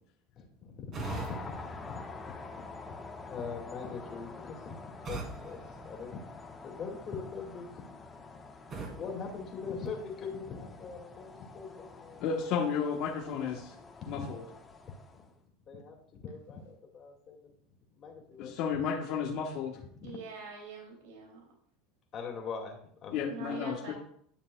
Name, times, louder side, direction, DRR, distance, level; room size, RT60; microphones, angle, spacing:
voice 1, 0.4-2.0 3.3-4.7 5.1-5.6 5.8-6.2 6.6-7.7 9.0-12.2 12.6-12.7 14.0-14.3 15.1-15.2 15.7-16.0 16.2-17.5 18.0-18.5 19.9-20.1 22.1-23.2, left 5 dB, 35° left, 1 dB, 2.3 m, -42 dB
sound 1, 0.9-2.9 5.0-6.8 8.7-10.3, right 4 dB, 35° right, 2.5 m, -44 dB
sound 2, 1.0-15.3, left 3 dB, 20° left, 1.2 m, -47 dB
voice 2, 12.2-13.7 14.1-14.4 18.4-19.8 23.1-23.9, left 6 dB, 60° left, -1 dB, 1.2 m, -32 dB
voice 3, 20.0-21.4 23.3-23.9, right 4 dB, 85° right, -1 dB, 3.1 m, -44 dB
11.5 x 6.6 x 2.4 m, 0.66 s
supercardioid pair, 115°, 0 cm